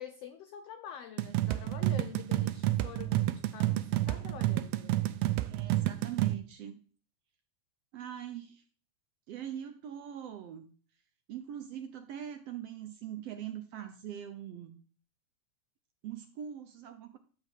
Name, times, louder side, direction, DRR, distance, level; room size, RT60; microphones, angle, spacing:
voice 1, 0.0-5.0, left 9 dB, 90° left, 1.4 m, -46 dB
sound 1, 1.2-6.3, right 15 dB, 85° right, 1.4 m, -30 dB
voice 2, 5.5-6.8 7.9-8.6 9.3-10.7 11.3-14.7 16.0-17.2, right 10 dB, 70° right, 1.6 m, -42 dB
11.5 x 4.7 x 7.8 m
omnidirectional pair, 3.6 m